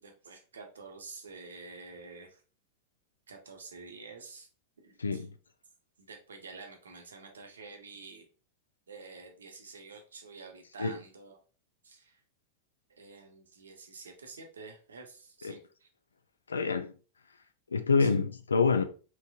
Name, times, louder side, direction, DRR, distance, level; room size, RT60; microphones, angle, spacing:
voice 1, 0.0-2.4 3.3-4.5 4.8-5.3 6.0-8.2 8.9-11.4 11.8-12.2 12.9-15.9 18.0-18.2, right 4 dB, 70° right, 0.7 m, -49 dB
voice 2, 5.0-5.3 10.8-10.9 15.4-15.6 16.5-16.9 17.7-18.8, left 4 dB, 75° left, 0.3 m, -26 dB
3.3 x 3.0 x 2.3 m
figure-of-eight pair, 90°, 0 cm